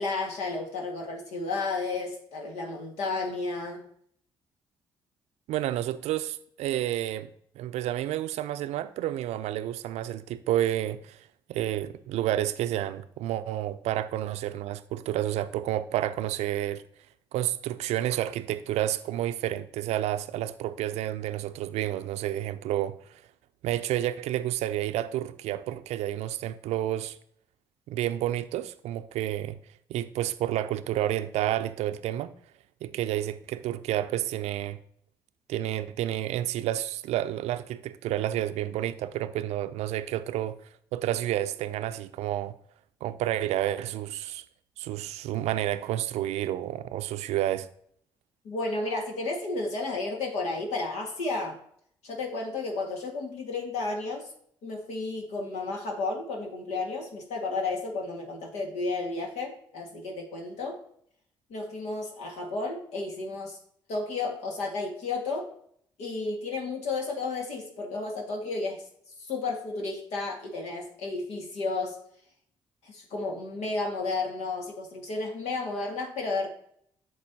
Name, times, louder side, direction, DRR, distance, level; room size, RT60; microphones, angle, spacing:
voice 1, 0.0-3.8 48.4-51.6 52.0-54.3 54.6-60.8 61.5-63.6 63.9-65.5 66.0-68.8 69.3-72.0 72.8-76.5, left 3 dB, 70° left, 1.8 m, -32 dB
voice 2, 5.5-7.3 7.6-11.2 11.5-16.8 17.3-22.9 23.6-27.2 27.9-29.6 29.9-32.3 32.8-34.8 35.5-40.6 40.9-42.5 43.0-44.4 44.8-47.7, right 13 dB, 70° right, 0.5 m, -30 dB
8.8 x 6.5 x 2.8 m
hypercardioid pair, 45°, 12 cm